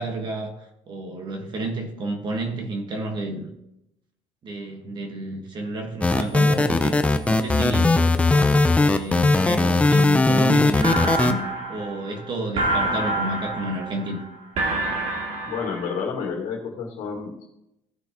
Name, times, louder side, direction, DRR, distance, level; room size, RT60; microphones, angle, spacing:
voice 1, 0.0-3.5 4.4-7.0 7.3-8.0 8.8-14.3, right 2 dB, 40° right, 4 dB, 1.5 m, -30 dB
sound 1, 6.0-11.3, left 2 dB, 10° left, 0.7 m, -18 dB
sound 2, 10.8-16.1, right 1 dB, 55° right, 2.7 m, -27 dB
voice 2, 15.4-17.5, left 6 dB, 80° left, 0 dB, 2.0 m, -30 dB
16.0 x 6.3 x 3.0 m, 0.84 s
cardioid pair, 140°, 12 cm